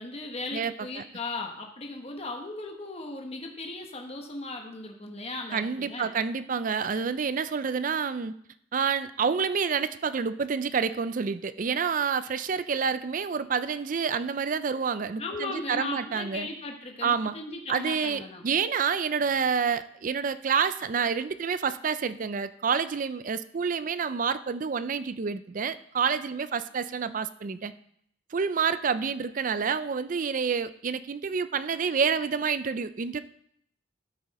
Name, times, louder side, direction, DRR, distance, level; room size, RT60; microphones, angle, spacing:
voice 1, 0.0-6.1 15.2-18.4, left 2 dB, 35° left, 2 dB, 1.2 m, -37 dB
voice 2, 0.5-1.0 5.5-8.3 8.7-16.5 17.0-17.4 17.7-27.7 28.3-33.2, right 6 dB, 45° right, 13 dB, 0.4 m, -28 dB
13.0 x 6.2 x 4.2 m, 0.68 s
head